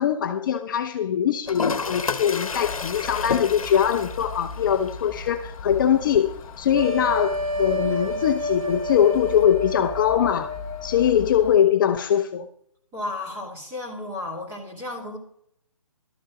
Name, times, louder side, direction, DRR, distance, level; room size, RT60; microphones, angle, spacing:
voice 1, 0.0-12.5, left 9 dB, 35° left, 0.7 m, -22 dB
Toilet flush, 1.5-9.4, left 5 dB, 75° left, 1.1 m, -34 dB
sound 1, 2.5-11.6, left 3 dB, 20° left, 1.1 m, -38 dB
sound 2, 6.7-11.2, left 1 dB, 85° right, 1.5 m, -30 dB
voice 2, 12.9-15.2, left 2 dB, 15° right, 2.8 m, -33 dB
12.5 x 7.8 x 5.0 m
hypercardioid pair, 150°, 18 cm